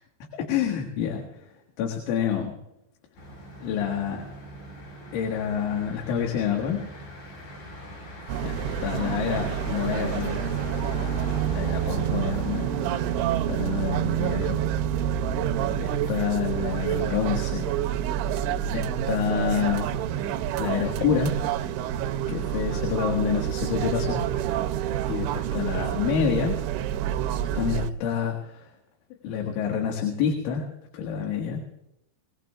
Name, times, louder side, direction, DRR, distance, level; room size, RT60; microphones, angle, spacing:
voice 1, 0.4-1.2 1.8-2.6 3.6-4.3 5.1-6.8 8.4-10.5 11.4-12.7 13.5-14.6 15.8-17.7 18.7-19.9 20.6-21.4 22.3-24.2 25.1-26.6 27.6-28.7 29.2-30.7 30.9-31.6, left 8 dB, 90° left, 1 dB, 4.1 m, -28 dB
Motor vehicle (road), 3.2-13.3, equal, 65° left, 9.6 m, -40 dB
sound 1, 8.3-27.9, right 10 dB, 85° right, 2.9 m, -28 dB
24.0 x 19.0 x 2.3 m, 0.84 s
omnidirectional pair, 5.4 m